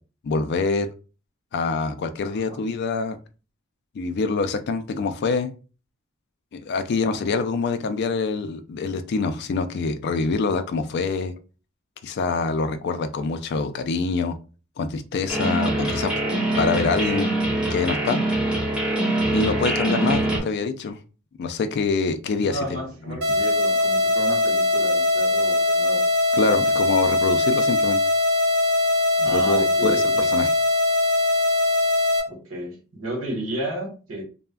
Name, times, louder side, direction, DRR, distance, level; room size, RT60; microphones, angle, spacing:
voice 1, 0.2-0.9 1.5-3.2 3.9-5.5 6.5-11.3 12.0-14.4 14.8-16.2 16.5-17.3 17.7-18.2 19.3-21.0 21.4-22.8 23.1-23.2 26.3-28.0 29.3-30.5, left 4 dB, 55° left, 9 dB, 0.3 m, -25 dB
voice 2, 2.3-2.6 7.1-7.3 20.3-20.5 22.3-26.0 26.5-26.7 29.2-30.3 32.3-34.2, right 1 dB, 85° right, -1 dB, 1.3 m, -33 dB
sound 1, 15.3-20.4, right 1 dB, 5° right, 0.8 m, -24 dB
sound 2, 23.2-32.2, left 2 dB, 50° right, 0.7 m, -21 dB
3.3 x 2.1 x 2.2 m, 0.34 s
head